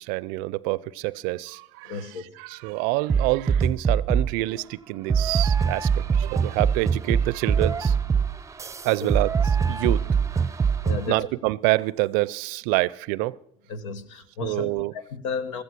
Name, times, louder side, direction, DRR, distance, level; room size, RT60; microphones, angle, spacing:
voice 1, 0.0-8.0 8.8-9.3 9.7-10.2 11.1-13.4 14.4-14.9, right 20 dB, 65° right, 0.5 m, -27 dB
voice 2, 1.8-2.3 9.0-9.1 10.8-11.3 13.7-15.6, left 4 dB, 80° left, 1.3 m, -33 dB
sound 1, 3.1-4.4 5.1-11.1, right 6 dB, 20° right, 0.6 m, -23 dB
15.5 x 14.0 x 6.1 m
hypercardioid pair, 75°, 16 cm